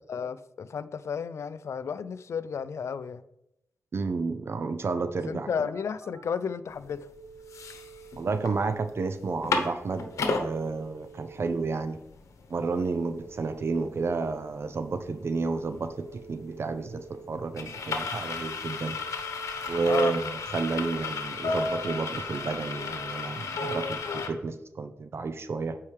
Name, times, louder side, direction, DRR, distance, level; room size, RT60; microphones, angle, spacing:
voice 1, 0.1-3.2 5.2-7.1 19.9-20.2, left 6 dB, 65° left, 0.4 m, -33 dB
voice 2, 3.9-5.5 8.2-10.1 10.4-12.0 12.5-19.0 19.7-20.2 20.5-25.8, right 4 dB, 55° right, 0.5 m, -31 dB
Telephone, 5.3-6.3 6.8-8.4 9.8-11.4 12.8-14.4 15.8-17.4 18.8-20.4, right 5 dB, 40° right, 1.7 m, -50 dB
sound 1, 6.9-7.0 7.3-8.5 8.9-9.0 9.2-10.5 11.1-11.2 11.4-24.3, left 4 dB, 85° left, 0.9 m, -33 dB
8.5 x 4.6 x 3.3 m
cardioid pair, 75°, 5 cm